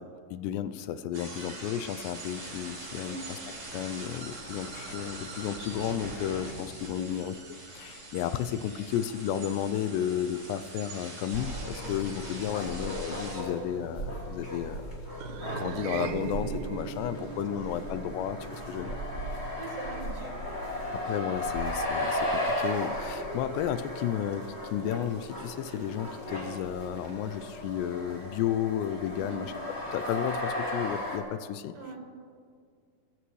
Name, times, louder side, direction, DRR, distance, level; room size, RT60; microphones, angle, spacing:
voice 1, 0.0-3.4 3.7-7.3 7.7-15.0 15.5-19.0 20.9-29.5 29.9-31.7, left 10 dB, 85° left, 12 dB, 2.7 m, -33 dB
sound 1, 1.1-13.4, right 2 dB, 30° right, 5.3 m, -43 dB
sound 2, 11.3-31.2, left 1 dB, 25° left, 1.5 m, -35 dB
sound 3, 15.2-19.7, right 7 dB, 80° right, 2.9 m, -39 dB
voice 2, 17.5-17.8 19.6-20.4 29.1-29.4 31.7-32.0, right 4 dB, 55° right, -1 dB, 3.6 m, -42 dB
23.0 x 13.0 x 3.2 m, 2.2 s
omnidirectional pair, 4.9 m